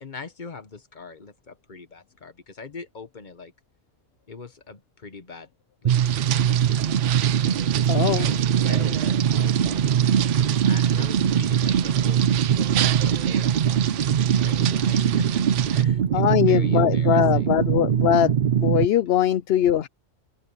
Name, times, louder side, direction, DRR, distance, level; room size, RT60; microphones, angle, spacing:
voice 1, 0.0-3.5 4.3-5.5 5.8-6.8 8.1-12.5 13.0-14.0 14.3-17.6, left 4 dB, 40° left, 1.4 m, -42 dB
sound 1, 5.8-18.8, right 9 dB, 50° right, 0.6 m, -22 dB
sound 2, 5.9-15.8, right 12 dB, 80° right, 0.9 m, -31 dB
voice 2, 7.9-8.3 16.1-19.9, left 11 dB, 65° left, 0.8 m, -21 dB
omnidirectional pair, 1.3 m